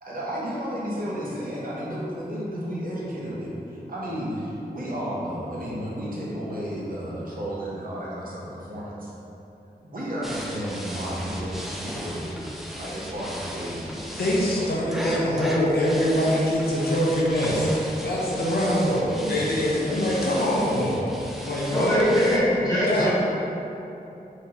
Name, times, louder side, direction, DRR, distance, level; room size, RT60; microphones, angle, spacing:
voice 1, 0.0-9.1 9.9-12.5 12.8-14.7 18.6-20.5 22.9-23.1, equal, 60° right, -7 dB, 0.8 m, -33 dB
sound 1, 10.2-22.4, equal, ahead, 0.3 m, -36 dB
voice 2, 14.2-17.7 18.0-19.0 19.3-21.1 21.4-22.1 22.9-23.1, equal, 70° left, -5 dB, 0.7 m, -23 dB
voice 3, 21.6-23.1, equal, 25° left, -10 dB, 1.2 m, -22 dB
3.5 x 2.9 x 2.9 m, 2.9 s
wide cardioid pair, 95°, 17 cm